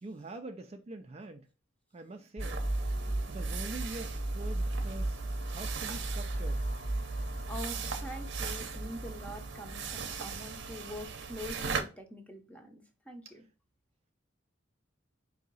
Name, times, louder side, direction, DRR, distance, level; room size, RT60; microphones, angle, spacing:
voice 1, 0.0-1.5 1.9-2.6 3.3-6.6, right 2 dB, 30° right, 0.4 m, -44 dB
sound 1, 2.4-11.0, right 1 dB, 60° left, 1.5 m, -36 dB
sound 2, 2.4-11.8, right 5 dB, 60° right, 0.7 m, -40 dB
voice 2, 7.5-13.4, left 1 dB, 5° left, 0.7 m, -44 dB
4.9 x 2.8 x 3.9 m
head